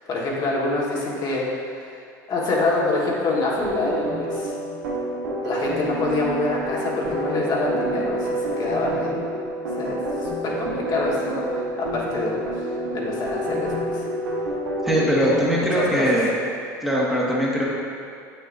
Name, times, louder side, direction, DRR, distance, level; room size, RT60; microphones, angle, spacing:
voice 1, 0.0-2.0 2.3-4.5 5.4-9.2 9.7-14.0 14.9-16.2, left 2 dB, 45° left, -4 dB, 1.5 m, -26 dB
sound 1, 3.4-15.4, right 1 dB, 85° right, 1.2 m, -28 dB
voice 2, 14.8-16.3 16.8-17.7, equal, 5° right, -6 dB, 1.4 m, -21 dB
7.1 x 6.6 x 2.6 m, 2.2 s
hypercardioid pair, 80°, 10 cm